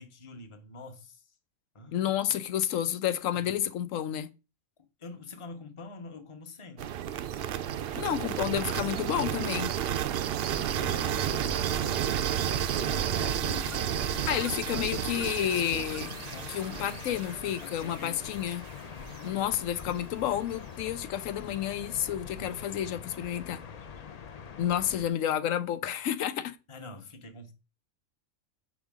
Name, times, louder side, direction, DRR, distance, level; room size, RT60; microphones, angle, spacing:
voice 1, 0.0-1.4 1.7-2.1 3.3-3.5 5.0-7.0 7.9-8.3 10.1-12.1 12.4-14.7 16.3-17.2 17.5-18.2 18.9-19.4 22.4-22.6 26.7-27.5, left 3 dB, 25° left, 0.8 m, -47 dB
voice 2, 1.9-4.3 8.0-9.7 14.3-16.2 16.5-18.6 19.2-23.6 24.6-26.6, left 10 dB, 85° left, 1.0 m, -30 dB
sound 1, 6.8-18.7, right 10 dB, 60° right, 0.6 m, -32 dB
sound 2, 10.5-25.1, left 7 dB, 55° left, 0.4 m, -44 dB
7.2 x 5.0 x 3.6 m
omnidirectional pair, 1.3 m